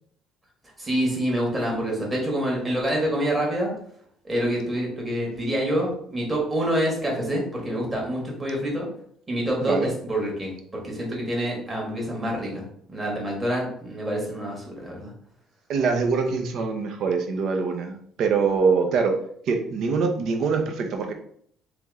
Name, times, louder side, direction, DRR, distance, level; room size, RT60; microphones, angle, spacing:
voice 1, 0.8-3.7 4.2-8.9 9.3-15.1, right 1 dB, 25° right, -2 dB, 1.7 m, -27 dB
voice 2, 15.7-19.2 19.5-21.1, right 5 dB, 65° right, 4 dB, 0.7 m, -24 dB
3.5 x 3.0 x 3.6 m, 0.64 s
cardioid pair, 100°, 0 cm